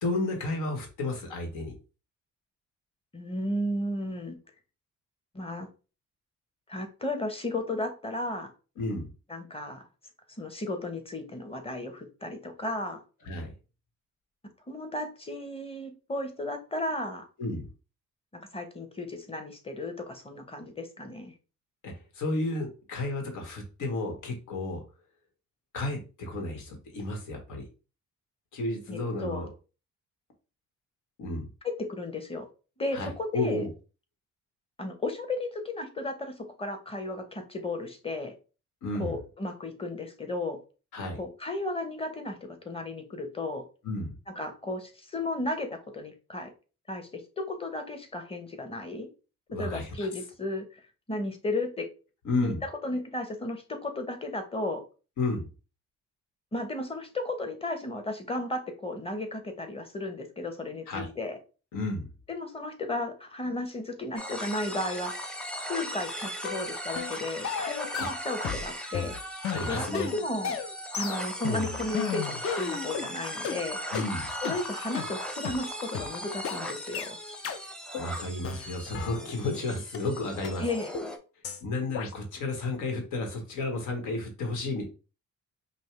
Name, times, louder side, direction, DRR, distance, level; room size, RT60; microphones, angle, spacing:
voice 1, 0.0-1.7 8.8-9.1 13.2-13.5 17.4-17.7 21.8-24.8 25.7-27.7 28.5-29.5 31.2-31.5 32.9-33.7 38.8-39.1 40.9-41.2 43.8-44.1 49.5-50.1 52.2-52.6 55.2-55.4 60.9-61.1 61.7-62.1 67.9-68.1 69.5-70.1 73.9-74.3 78.0-80.6 81.6-84.8, left 2 dB, 80° left, 3 dB, 1.3 m, -32 dB
voice 2, 3.1-4.4 5.3-5.7 6.7-8.5 9.3-9.8 10.3-13.0 14.7-17.2 18.3-21.3 28.9-29.4 31.6-32.5 32.8-33.6 34.8-38.3 39.0-40.6 41.2-42.4 42.6-43.6 44.3-46.5 46.9-49.1 49.5-50.8 51.1-51.9 52.4-54.8 56.5-61.4 62.3-65.1 65.7-69.2 69.7-70.6 71.0-73.8 74.4-77.2 80.6-80.9, left 2 dB, 20° left, 6 dB, 1.0 m, -34 dB
sound 1, 64.2-81.2, equal, 5° left, 0.7 m, -38 dB
sound 2, 66.4-66.6 67.0-67.2 67.4-68.7 68.9-73.1 73.4-73.6 73.9-74.1 74.4-74.6 74.9-75.1 75.4-75.6 75.9-76.1 76.4-76.6 76.9-77.1 77.4-77.6 77.9-78.1 78.4-79.6 79.9-80.0 80.4-80.5 80.9-81.1 81.4-81.6 81.9-82.1, left 7 dB, 50° left, 0.6 m, -34 dB
5.3 x 2.1 x 3.2 m, 0.33 s
cardioid pair, 90°, 30 cm